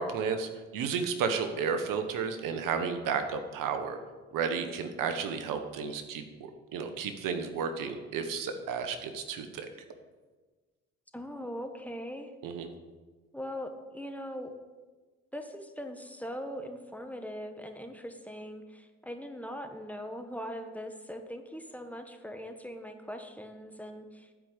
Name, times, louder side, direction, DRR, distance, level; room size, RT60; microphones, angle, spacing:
voice 1, 0.0-4.0 4.3-9.7 12.4-12.7, right 6 dB, 75° right, 7 dB, 1.3 m, -32 dB
voice 2, 11.1-12.3 13.3-14.5 15.3-24.3, equal, 5° left, 5 dB, 1.4 m, -41 dB
11.5 x 5.1 x 8.3 m, 1.3 s
supercardioid pair, 55°, 33 cm